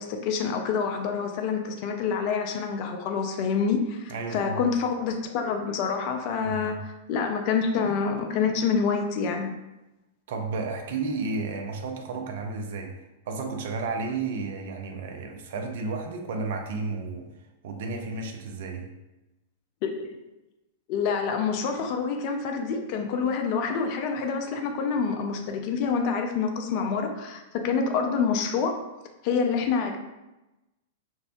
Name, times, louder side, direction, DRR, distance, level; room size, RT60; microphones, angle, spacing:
voice 1, 0.0-9.5 19.8-20.2 20.9-28.8 29.2-30.0, left 5 dB, 45° left, 4 dB, 0.3 m, -27 dB
voice 2, 4.1-4.6 6.4-6.8 10.3-13.0 13.3-17.3 17.6-18.9, right 4 dB, 55° right, 3 dB, 0.4 m, -32 dB
2.6 x 2.1 x 2.4 m, 1.0 s
figure-of-eight pair, 100°, 0 cm